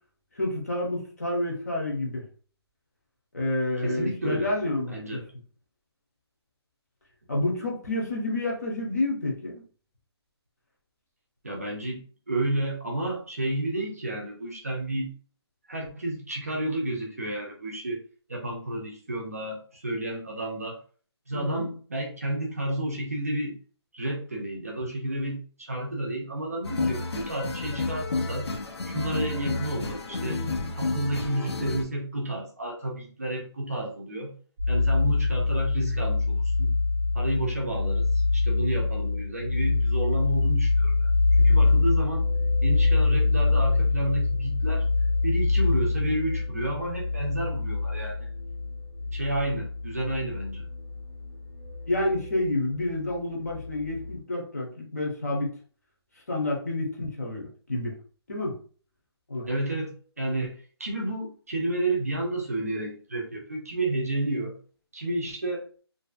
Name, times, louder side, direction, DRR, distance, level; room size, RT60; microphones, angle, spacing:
voice 1, 0.3-2.3 3.3-5.2 7.3-9.6 21.3-21.6 51.9-55.5 56.3-57.9 58.3-58.6 59.3-59.5, left 1 dB, 35° left, -1 dB, 0.7 m, -29 dB
voice 2, 3.8-4.5 4.9-5.3 11.4-15.1 15.7-18.0 18.3-20.8 21.3-23.6 23.9-28.5 28.8-30.4 30.7-34.4 34.7-36.8 37.1-41.1 41.4-42.3 42.6-44.9 45.2-48.3 49.1-50.7 59.5-64.6 64.9-65.6, right 1 dB, 35° right, 0 dB, 0.5 m, -31 dB
sound 1, 26.6-31.8, left 3 dB, 70° left, 0.5 m, -31 dB
sound 2, 34.6-54.2, left 3 dB, 5° right, 0.8 m, -25 dB
2.6 x 2.3 x 2.3 m, 0.42 s
hypercardioid pair, 175°, 14 cm